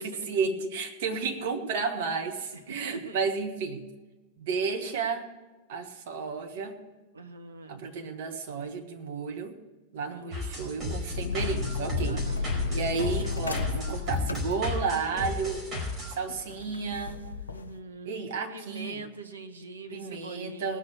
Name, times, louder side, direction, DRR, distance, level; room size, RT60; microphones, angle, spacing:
voice 1, 0.0-3.8 4.4-5.2 5.7-6.8 7.7-9.6 9.9-12.2 12.7-15.6 16.1-17.2 18.0-19.0 19.9-20.8, right 5 dB, 55° right, 4 dB, 1.6 m, -32 dB
voice 2, 2.8-3.2 7.1-7.8 10.2-10.3 12.0-12.5 17.5-20.8, right 2 dB, 75° right, 6 dB, 1.1 m, -43 dB
sound 1, 10.3-16.1, left 2 dB, 20° right, 4.6 m, -33 dB
sound 2, 11.1-17.8, left 4 dB, 75° left, 0.8 m, -34 dB
19.0 x 6.5 x 6.8 m, 1.2 s
figure-of-eight pair, 90°, 0 cm